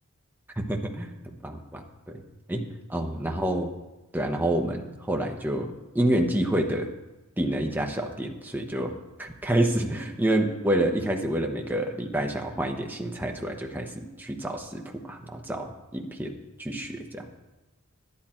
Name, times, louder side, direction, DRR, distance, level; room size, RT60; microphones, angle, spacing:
voice 1, 0.6-1.1 1.4-2.2 2.5-2.6 2.9-3.7 4.1-6.9 7.4-8.9 9.2-14.8 15.1-17.3, right 1 dB, 10° right, 2 dB, 1.0 m, -28 dB
11.5 x 11.0 x 4.4 m, 1.1 s
head